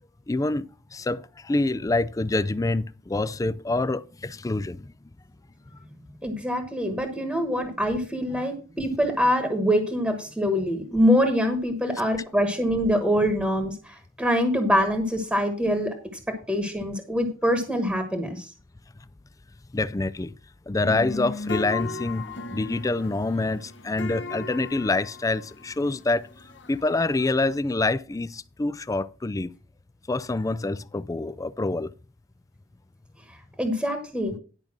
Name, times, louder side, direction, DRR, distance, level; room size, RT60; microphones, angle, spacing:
voice 1, 0.3-0.7 0.9-4.9 19.7-20.3 20.7-26.3 26.7-29.5 30.1-31.9, left 2 dB, 15° left, 0.4 m, -26 dB
voice 2, 6.2-15.9 16.3-18.5 33.3-34.3, equal, 5° right, 1.3 m, -24 dB
sound 1, 20.8-27.6, left 2 dB, 65° left, 1.3 m, -37 dB
11.0 x 5.2 x 6.0 m
head